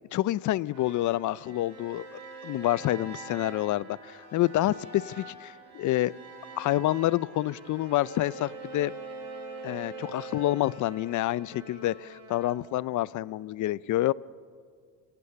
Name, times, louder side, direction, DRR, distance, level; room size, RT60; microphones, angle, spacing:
voice 1, 0.1-6.1 6.6-8.9 9.6-14.1, left 15 dB, 55° left, 0.5 m, -28 dB
sound 1, 0.7-12.6, right 3 dB, 50° right, 4.6 m, -44 dB
29.0 x 17.0 x 6.9 m
cardioid pair, 125°, 37 cm